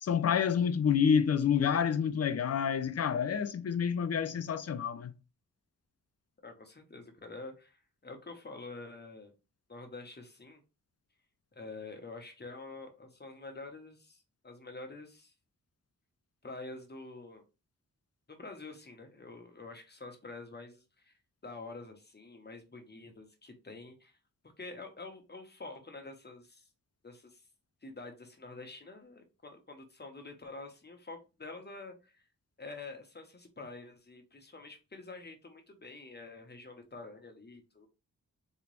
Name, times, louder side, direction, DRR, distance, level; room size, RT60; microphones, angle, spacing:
voice 1, 0.0-5.1, left 7 dB, 45° left, 0.5 m, -28 dB
voice 2, 6.4-9.3 9.7-10.6 11.5-15.3 16.4-17.4 18.3-21.1 21.4-24.2 24.6-26.7 27.0-27.5 27.8-32.3 32.6-37.9, left 3 dB, 30° left, 1.0 m, -47 dB
3.3 x 3.0 x 3.1 m
cardioid pair, 70°, 34 cm